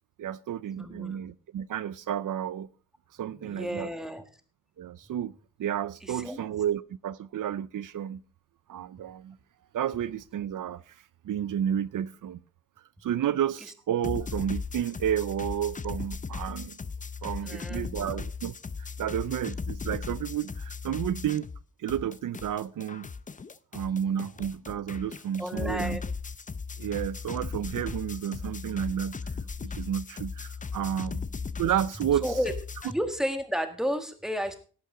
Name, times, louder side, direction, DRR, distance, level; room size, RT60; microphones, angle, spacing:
voice 1, 0.2-2.7 3.2-3.9 4.8-5.3 5.6-8.2 8.7-9.4 9.7-12.4 13.0-16.8 17.2-21.5 21.8-23.1 23.7-26.0 26.8-29.2 29.6-31.2 31.6-32.3, right 10 dB, 75° right, 0.5 m, -31 dB
voice 2, 0.8-1.2 3.2-4.2 6.0-6.5 17.4-18.2 25.4-26.0 32.2-32.5 32.8-34.6, equal, ahead, 1.6 m, -32 dB
sound 1, 14.0-21.6 21.9-32.9, left 5 dB, 25° left, 0.5 m, -37 dB
17.5 x 8.4 x 3.7 m
wide cardioid pair, 135°, 32 cm